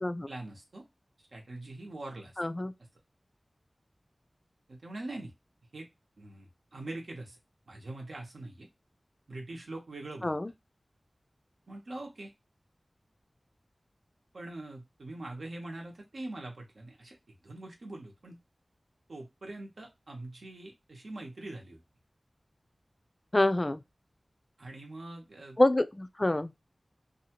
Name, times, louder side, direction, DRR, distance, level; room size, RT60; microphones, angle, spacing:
voice 1, 0.3-0.8 1.3-2.3 4.7-5.3 5.7-5.9 6.2-7.4 7.7-8.7 9.3-10.3 11.7-12.3 14.3-18.4 19.1-21.8 24.6-25.6, right 2 dB, 85° right, 0.9 m, -43 dB
voice 2, 2.4-2.7 10.2-10.5 23.3-23.8 25.6-26.5, left 1 dB, 30° left, 0.3 m, -26 dB
2.7 x 2.3 x 2.8 m
wide cardioid pair, 75°, 0 cm